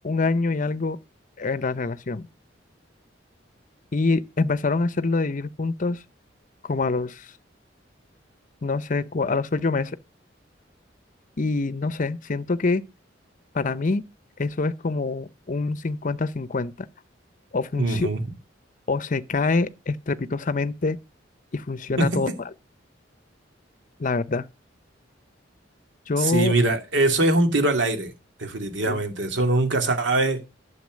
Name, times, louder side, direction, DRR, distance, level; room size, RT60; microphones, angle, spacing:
voice 1, 0.0-1.0 1.4-2.3 3.9-6.0 6.6-7.3 8.6-10.0 11.4-12.8 13.5-14.0 14.4-16.9 17.5-18.1 18.9-21.0 21.5-22.3 24.0-24.5 26.1-26.5 28.8-29.0, left 3 dB, 45° left, 0.7 m, -25 dB
voice 2, 17.8-18.2 22.0-22.1 26.2-28.1 28.4-30.4, right 2 dB, 70° right, 2.4 m, -22 dB
11.5 x 7.2 x 6.3 m
head